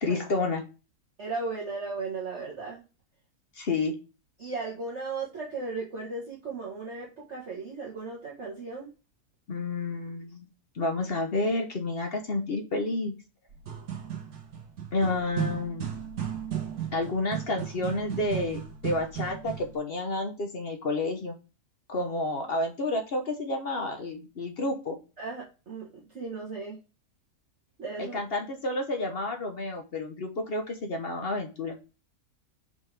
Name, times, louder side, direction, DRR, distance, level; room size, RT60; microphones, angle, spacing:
voice 1, 0.0-0.6 3.6-4.0 9.5-10.5 10.8-13.2 14.9-15.8 16.9-21.4 21.9-25.0 28.0-31.8, left 2 dB, 45° left, 5 dB, 0.9 m, -30 dB
voice 2, 1.2-2.8 4.4-8.9 25.2-26.8 27.8-28.2, right 3 dB, 45° right, -5 dB, 1.7 m, -36 dB
sound 1, 13.5-19.8, right 9 dB, 70° right, 1.7 m, -35 dB
5.4 x 5.2 x 3.3 m, 0.31 s
omnidirectional pair, 1.6 m